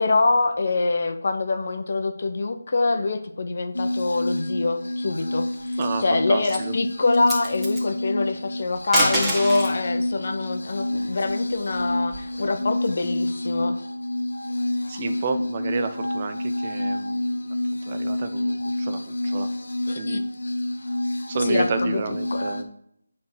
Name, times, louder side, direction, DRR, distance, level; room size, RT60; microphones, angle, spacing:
voice 1, 0.0-13.7 19.9-20.2 21.4-22.5, left 3 dB, 50° left, 8 dB, 0.9 m, -25 dB
sound 1, 3.7-22.6, left 1 dB, 65° left, 1.3 m, -28 dB
sound 2, 5.5-6.0 6.4-6.7 7.1-7.8 8.8-9.8 11.3-12.5, right 1 dB, 5° right, 1.7 m, -27 dB
voice 2, 5.8-6.7 14.9-17.3 17.7-19.5 20.0-20.2 21.3-22.7, right 5 dB, 30° right, 8 dB, 0.7 m, -31 dB
8.5 x 3.7 x 6.2 m, 0.73 s
figure-of-eight pair, 160°, 0 cm